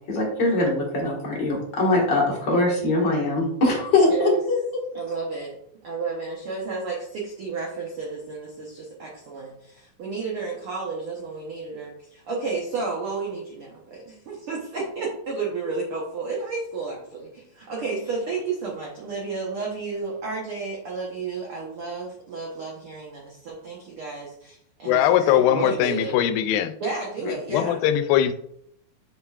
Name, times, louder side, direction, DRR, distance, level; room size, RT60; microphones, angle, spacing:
voice 1, 0.1-4.6, left 2 dB, 45° left, -3 dB, 1.6 m, -22 dB
voice 2, 4.9-5.6 5.8-26.1 26.8-27.8, right 4 dB, 85° right, -2 dB, 1.2 m, -32 dB
voice 3, 24.9-26.7 27.3-28.3, left 11 dB, 90° left, 10 dB, 2.3 m, -21 dB
7.4 x 5.6 x 2.4 m, 0.71 s
omnidirectional pair, 4.0 m